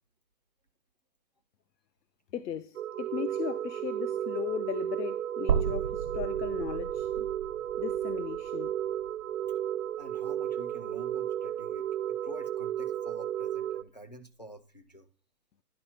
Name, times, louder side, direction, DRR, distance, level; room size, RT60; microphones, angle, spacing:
voice 1, 2.3-7.3 7.8-8.8, left 10 dB, 85° left, 0.7 m, -37 dB
sound 1, 2.8-13.8, right 11 dB, 55° right, 0.5 m, -33 dB
sound 2, 5.5-9.6 10.0-10.1 11.5-11.6, right 7 dB, 80° right, 1.1 m, -35 dB
voice 2, 10.0-15.1, equal, 30° left, 0.4 m, -48 dB
10.5 x 4.0 x 5.6 m
hypercardioid pair, 160°, 49 cm